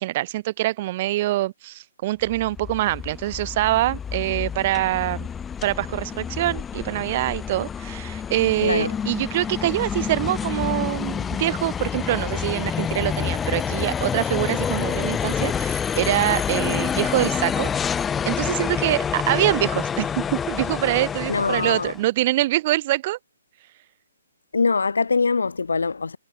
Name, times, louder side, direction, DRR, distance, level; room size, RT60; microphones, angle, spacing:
voice 1, 0.0-5.3 5.6-17.7 18.3-23.2, right 16 dB, 40° right, 0.5 m, -24 dB
sound 1, 2.2-22.0, left 7 dB, 10° left, 0.5 m, -28 dB
voice 2, 8.6-8.9 21.3-21.9 24.5-26.2, left 4 dB, 75° left, 1.6 m, -23 dB
figure-of-eight pair, 135°, 0 cm